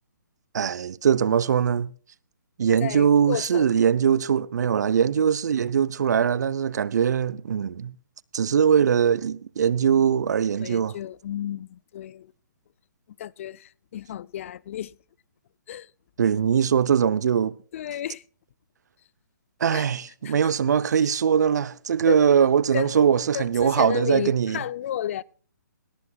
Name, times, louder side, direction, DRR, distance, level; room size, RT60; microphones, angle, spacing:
voice 1, 0.5-1.9 2.6-7.9 8.3-10.9 16.2-17.6 19.6-24.6, right 7 dB, 60° right, 0.8 m, -21 dB
voice 2, 2.8-3.7 10.6-12.3 13.2-15.0 15.7-15.9 17.7-18.2 19.7-19.9 20.2-20.3 22.1-22.4 22.7-25.2, left 11 dB, 45° left, 0.6 m, -32 dB
18.0 x 17.5 x 2.4 m
hypercardioid pair, 145°, 10 cm